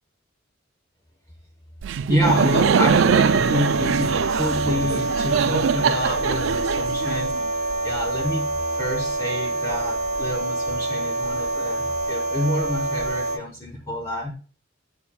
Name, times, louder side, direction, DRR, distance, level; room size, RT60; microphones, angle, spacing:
Laughter, 1.8-7.6, right 7 dB, 70° right, 0.3 m, -22 dB
voice 1, 2.1-7.4 7.8-14.3, equal, 15° left, -1 dB, 1.2 m, -28 dB
sound 1, 2.2-13.4, right 2 dB, 35° right, 0.7 m, -26 dB
8.4 x 6.9 x 2.4 m, 0.39 s
head